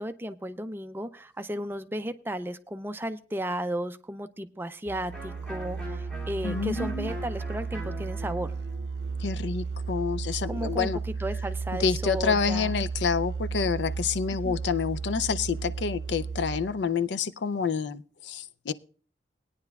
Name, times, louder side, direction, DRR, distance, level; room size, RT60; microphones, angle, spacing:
voice 1, 0.0-8.5 10.5-12.7 14.4-14.6, right 1 dB, 10° right, 9 dB, 0.4 m, -34 dB
Musical instrument, 4.9-16.9, right 5 dB, 70° right, 0.5 m, -34 dB
Electric guitar, 5.1-10.7, left 1 dB, 5° left, 2.6 m, -44 dB
voice 2, 6.4-7.1 9.2-11.0 11.8-18.7, left 5 dB, 80° left, 13 dB, 0.4 m, -28 dB
19.5 x 9.8 x 2.3 m, 0.39 s
head